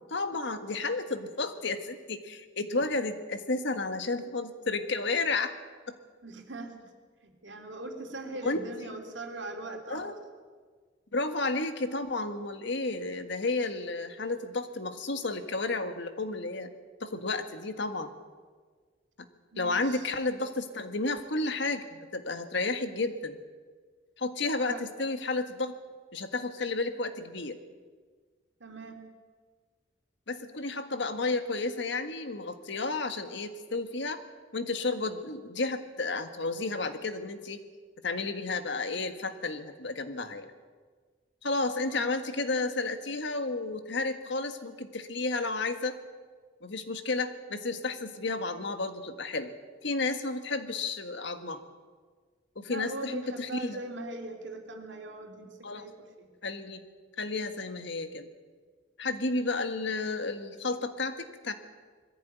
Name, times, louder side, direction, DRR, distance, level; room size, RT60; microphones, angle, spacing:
voice 1, 0.1-5.6 5.9-6.0 8.4-8.6 9.9-10.1 11.1-16.7 17.0-18.1 19.6-23.4 24.2-25.7 26.1-27.6 30.3-34.2 34.5-37.6 38.0-40.5 41.4-45.9 46.6-49.5 49.8-51.6 52.5-53.8 55.6-55.9 56.4-56.8 57.2-58.3 59.0-61.5, left 3 dB, 65° left, 8 dB, 1.6 m, -32 dB
voice 2, 6.2-6.8 7.2-10.1 19.5-20.1 24.6-24.8 28.6-29.0 41.9-42.1 52.7-56.3, right 2 dB, 70° right, 4 dB, 3.3 m, -41 dB
21.5 x 15.0 x 9.4 m, 1.5 s
head